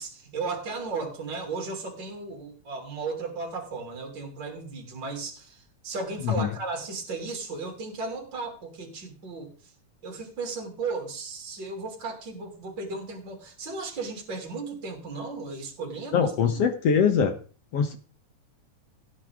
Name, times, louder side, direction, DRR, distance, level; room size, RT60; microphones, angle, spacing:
voice 1, 0.0-9.5 10.0-16.6, right 3 dB, 35° right, 2 dB, 3.6 m, -35 dB
voice 2, 16.1-17.3 17.7-18.0, left 6 dB, 60° left, 7 dB, 2.0 m, -22 dB
17.0 x 9.7 x 3.7 m, 0.39 s
omnidirectional pair, 3.5 m